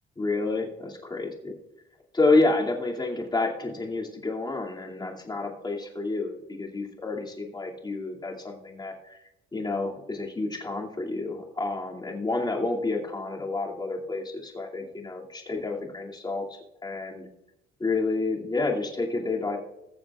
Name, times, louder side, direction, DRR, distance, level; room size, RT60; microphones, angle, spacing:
voice 1, 0.2-1.5 2.1-9.2 9.5-17.3 17.8-19.6, left 3 dB, 20° left, -1 dB, 2.5 m, -29 dB
20.5 x 7.3 x 2.4 m, 0.91 s
cardioid pair, 90°, 20 cm